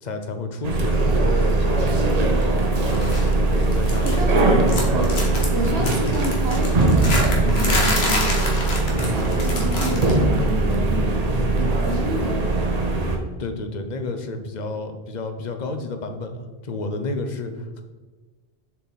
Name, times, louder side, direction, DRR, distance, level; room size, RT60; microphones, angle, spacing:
voice 1, 0.0-2.2 2.7-3.0 3.2-4.6 13.4-17.8, left 3 dB, 45° left, 6 dB, 0.8 m, -31 dB
sound 1, 0.6-13.2, right 2 dB, 40° right, 0.9 m, -20 dB
sound 2, 2.9-3.3 3.6-4.4 4.6-10.2 10.5-10.7 11.8-11.9, left 1 dB, 75° left, 1.6 m, -28 dB
voice 2, 4.0-4.6 5.5-8.5 9.0-12.8, right 1 dB, 75° right, 2 dB, 1.3 m, -30 dB
6.7 x 4.7 x 4.1 m, 1.3 s
omnidirectional pair, 1.1 m